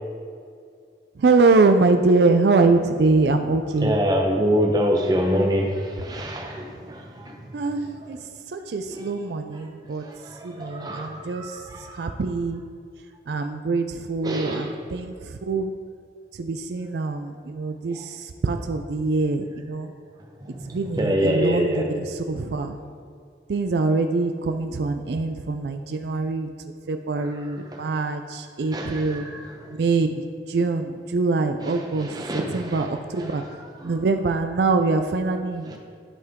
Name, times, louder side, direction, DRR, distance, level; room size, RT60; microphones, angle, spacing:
voice 1, 1.2-4.0 7.5-8.2 8.5-10.0 10.4-11.6 12.0-12.6 13.3-15.7 16.4-19.9 20.7-22.8 23.5-26.5 26.9-29.3 29.8-30.1 30.5-33.4 33.8-35.8, right 3 dB, 70° right, 7 dB, 0.4 m, -23 dB
voice 2, 3.8-7.5 7.8-8.2 8.9-9.1 10.0-12.1 14.2-15.0 17.9-18.0 20.4-21.9 22.3-22.4 27.2-27.8 28.7-29.8 31.6-34.0 35.6-35.8, equal, 20° right, 1 dB, 0.9 m, -27 dB
10.5 x 5.7 x 3.6 m, 2.2 s
head